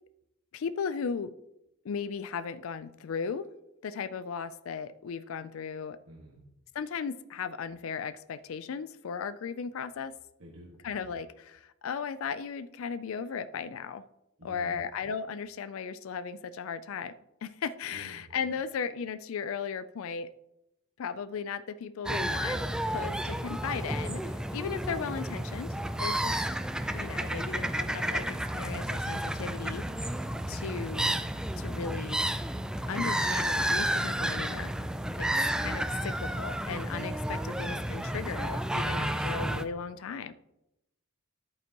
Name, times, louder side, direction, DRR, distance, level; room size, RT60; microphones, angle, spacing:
voice 1, 0.5-1.3 1.8-3.5 3.8-6.0 6.7-10.1 10.8-14.0 14.4-17.1 17.4-20.3 21.0-22.6 22.9-25.7 26.0-26.4 26.9-29.8 30.5-31.2 31.6-32.2 32.9-34.7 35.2-35.3 35.6-40.3, left 6 dB, 65° left, 14 dB, 0.4 m, -36 dB
voice 2, 6.1-6.4 10.4-10.8 14.4-14.8 17.9-18.2 30.5-31.0 38.9-39.3, right 1 dB, 70° right, -3 dB, 1.6 m, -48 dB
sound 1, 22.1-39.6, right 1 dB, 5° right, 0.3 m, -31 dB
11.0 x 8.8 x 2.9 m, 0.89 s
head